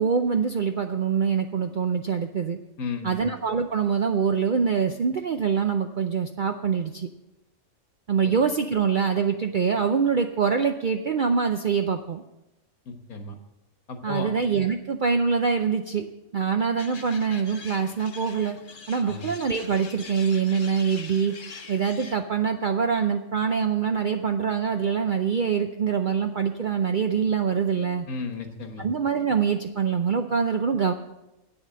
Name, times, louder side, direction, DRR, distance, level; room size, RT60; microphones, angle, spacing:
voice 1, 0.0-2.6 3.0-7.1 8.1-12.2 14.0-16.1 16.3-18.6 18.9-21.3 21.7-28.1 28.8-30.9, right 6 dB, 60° right, 6 dB, 0.5 m, -24 dB
voice 2, 2.8-3.2 12.9-13.4 13.9-14.3 19.0-19.3 28.1-28.8, left 3 dB, 80° left, 6 dB, 1.7 m, -34 dB
sound 1, 16.8-22.1, left 4 dB, 40° left, 1.0 m, -43 dB
8.9 x 7.2 x 7.5 m, 0.92 s
omnidirectional pair, 1.5 m